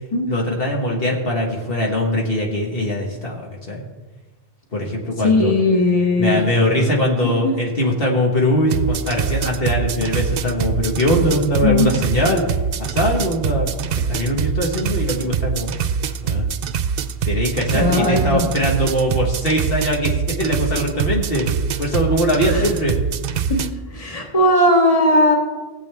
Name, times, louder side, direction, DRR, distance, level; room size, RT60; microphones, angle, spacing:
voice 1, 0.3-3.8 4.7-5.5 6.2-12.5 12.8-15.7 16.2-16.5 17.2-21.5 21.8-23.0, equal, 65° left, -1 dB, 1.8 m, -21 dB
voice 2, 5.2-6.4 7.4-7.5 11.6-11.9 17.7-18.5 22.5-22.7 23.5-25.4, left 2 dB, 35° left, 0 dB, 1.8 m, -17 dB
sound 1, 8.7-23.7, right 6 dB, 70° right, 0.8 m, -24 dB
18.5 x 7.9 x 3.5 m, 1.3 s
omnidirectional pair, 1.0 m